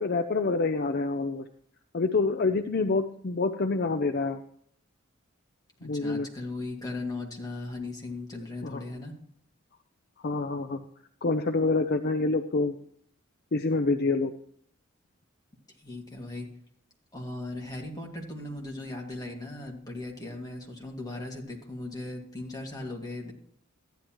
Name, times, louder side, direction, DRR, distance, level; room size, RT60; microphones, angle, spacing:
voice 1, 0.0-1.4 1.9-4.4 5.8-6.3 8.6-8.8 10.2-10.8 11.2-12.8 13.5-14.3, left 3 dB, 50° left, 8 dB, 0.5 m, -27 dB
voice 2, 5.8-9.1 15.8-16.5 17.1-23.3, left 2 dB, 20° left, -1 dB, 2.2 m, -38 dB
14.0 x 10.5 x 3.0 m, 0.64 s
head